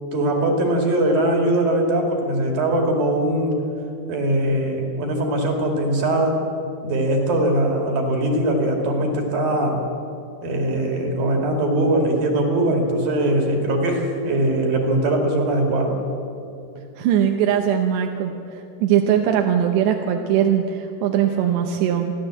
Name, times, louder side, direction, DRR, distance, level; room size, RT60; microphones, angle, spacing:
voice 1, 0.1-3.6 4.1-6.4 6.8-9.8 10.4-16.0, right 1 dB, 55° right, 2 dB, 3.6 m, -21 dB
voice 2, 17.0-22.1, right 9 dB, 75° right, 3 dB, 2.9 m, -20 dB
30.0 x 11.5 x 7.6 m, 2.7 s
omnidirectional pair, 5.6 m